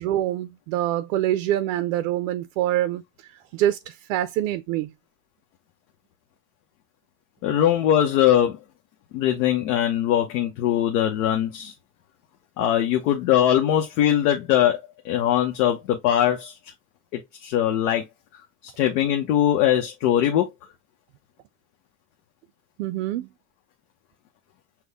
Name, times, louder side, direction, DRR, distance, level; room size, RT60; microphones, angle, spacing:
voice 1, 0.0-3.0 3.5-4.9 22.8-23.3, right 13 dB, 60° right, 0.6 m, -25 dB
voice 2, 7.4-8.6 9.1-11.7 12.6-16.5 17.1-18.0 18.6-20.5, left 11 dB, 65° left, 1.0 m, -21 dB
6.2 x 2.2 x 3.4 m
supercardioid pair, 160°, 44 cm